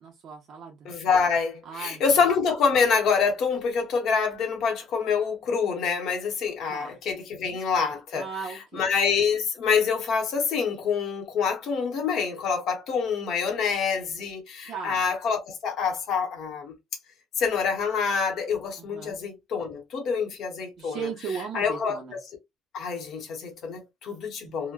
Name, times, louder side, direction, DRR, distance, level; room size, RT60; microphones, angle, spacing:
voice 1, 0.0-0.9 1.7-2.0 6.7-7.0 7.3-7.6 8.1-8.9 14.7-15.0 18.8-19.2 20.8-22.1 24.5-24.6, right 6 dB, 50° right, 0.7 m, -37 dB
voice 2, 0.8-8.3 8.7-16.7 17.4-21.0 21.5-22.2 22.7-24.7, left 5 dB, 60° left, 0.9 m, -26 dB
2.9 x 2.1 x 2.2 m
cardioid pair, 145°, 0 cm